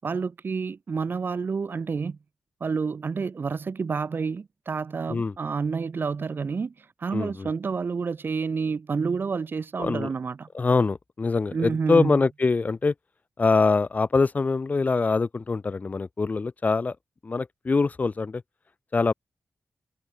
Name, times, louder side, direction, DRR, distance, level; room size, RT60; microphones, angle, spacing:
voice 1, 0.0-2.2 2.6-6.7 7.0-10.5 11.5-12.1, right 5 dB, 50° right, 1.2 m, -29 dB
voice 2, 7.1-7.5 9.8-10.1 10.5-12.9 13.4-17.0 17.2-18.4 18.9-19.1, left 4 dB, 35° left, 0.7 m, -24 dB
wide cardioid pair, 115°, 5 cm